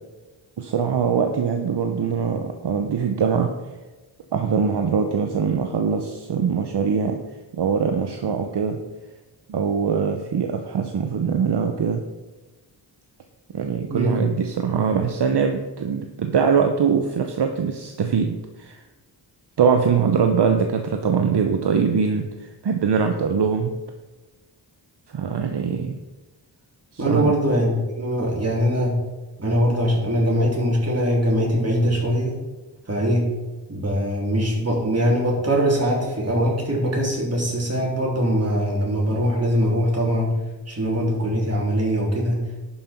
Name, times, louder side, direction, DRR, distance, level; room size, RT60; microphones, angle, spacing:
voice 1, 0.6-3.5 4.3-7.2 7.5-8.8 9.5-12.0 13.5-18.8 19.6-23.7 25.1-26.0 26.9-27.3, right 6 dB, 65° right, 5 dB, 0.8 m, -22 dB
voice 2, 13.9-14.2 27.0-28.9 29.4-32.3 32.9-33.2 33.7-40.3 40.7-42.4, equal, 35° right, -3 dB, 3.3 m, -22 dB
11.5 x 5.6 x 4.4 m, 1.2 s
wide cardioid pair, 65°, 43 cm